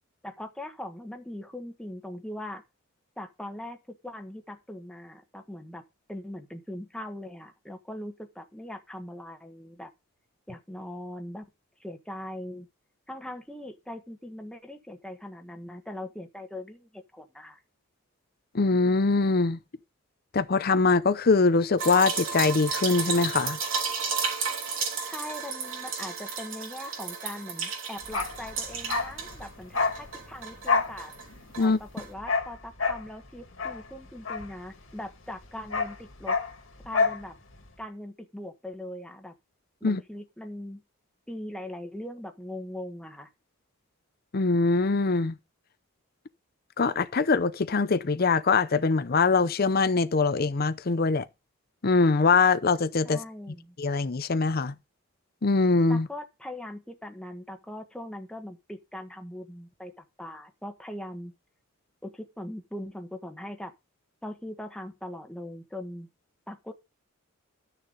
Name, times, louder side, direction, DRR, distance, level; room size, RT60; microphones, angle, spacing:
voice 1, 0.2-2.6 3.2-5.8 6.1-9.9 10.5-11.5 11.8-12.7 13.1-17.6 25.0-31.1 31.6-36.4 36.8-37.3 37.8-39.3 39.8-40.8 41.3-43.3 53.0-53.8 55.9-61.3 62.0-63.7 64.2-66.1 66.5-66.7, left 1 dB, 5° left, 1.3 m, -40 dB
voice 2, 18.5-19.6 20.3-23.6 31.6-31.8 39.8-40.0 44.3-45.3 46.8-51.2 51.8-53.2 53.8-54.7 55.4-56.1, left 4 dB, 45° left, 0.6 m, -23 dB
sound 1, 21.8-29.5 29.8-31.3 31.5-31.7 32.0-32.1, right 5 dB, 70° right, 3.3 m, -33 dB
Bark, 28.0-35.1 35.3-37.3 37.5-37.7, left 4 dB, 70° left, 2.3 m, -29 dB
12.5 x 6.7 x 4.0 m
head